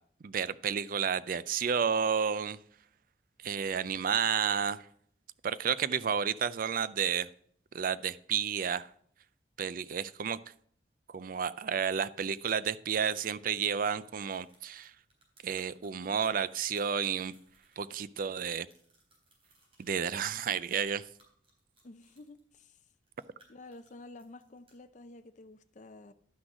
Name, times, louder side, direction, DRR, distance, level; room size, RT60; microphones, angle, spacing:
voice 1, 0.2-2.6 3.4-4.8 5.4-7.3 7.7-8.9 9.6-10.4 11.1-14.9 15.4-17.3 17.8-18.7 19.8-21.0, right 7 dB, 50° right, 0.4 m, -31 dB
sound 1, 14.2-18.1 18.5-19.9 20.4-22.4 22.9-24.7, right 2 dB, 35° right, 3.7 m, -65 dB
voice 2, 21.8-22.8 23.5-26.1, left 2 dB, 45° left, 0.6 m, -51 dB
11.5 x 6.2 x 4.9 m
head